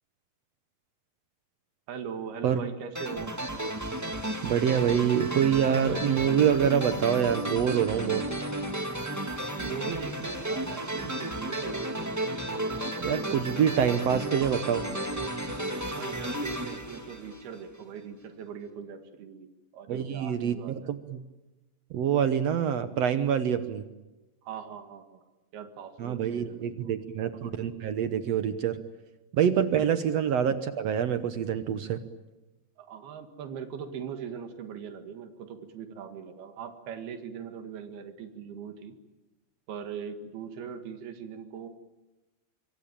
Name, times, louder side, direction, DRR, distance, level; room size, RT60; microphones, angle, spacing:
voice 1, 1.9-3.4 9.6-11.8 15.9-20.9 24.4-26.9 29.8-29.9 32.8-39.0 39.7-41.7, right 7 dB, 85° right, 7 dB, 3.8 m, -40 dB
sound 1, 2.9-17.8, right 1 dB, 10° right, 0.9 m, -33 dB
voice 2, 4.4-8.2 13.0-14.9 19.9-21.2 21.9-23.8 26.0-28.8 29.3-32.0, right 8 dB, 70° right, 10 dB, 1.5 m, -26 dB
25.5 x 25.0 x 8.9 m, 1.1 s
omnidirectional pair, 4.3 m